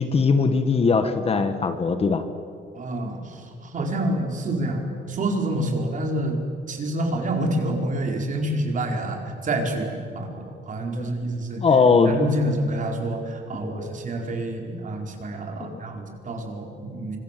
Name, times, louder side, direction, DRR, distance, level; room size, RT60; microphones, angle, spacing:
voice 1, 0.0-2.2 11.0-11.1 11.6-12.1 13.6-13.9 15.6-15.8, left 4 dB, 30° left, 9 dB, 1.5 m, -20 dB
voice 2, 2.7-6.4 6.7-11.6 12.0-17.2, right 1 dB, 40° right, 2 dB, 4.7 m, -28 dB
29.5 x 25.5 x 7.6 m, 2.5 s
cardioid pair, 160°, 20 cm